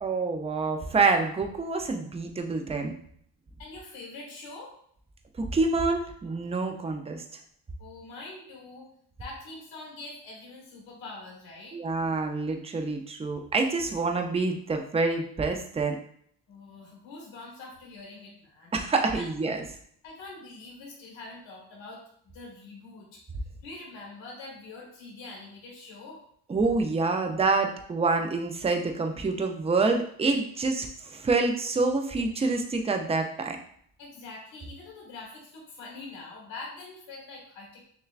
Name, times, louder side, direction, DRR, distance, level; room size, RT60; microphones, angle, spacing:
voice 1, 0.0-2.9 5.4-7.2 11.7-16.0 18.7-19.6 26.5-33.6, right 3 dB, 15° right, 4 dB, 0.4 m, -27 dB
voice 2, 3.6-4.7 7.8-8.9 9.2-11.8 16.5-18.7 19.1-19.3 20.0-23.2 23.6-26.2 34.0-37.9, left 3 dB, 70° left, -3 dB, 1.5 m, -44 dB
6.5 x 2.2 x 2.4 m, 0.65 s
cardioid pair, 110°, 48 cm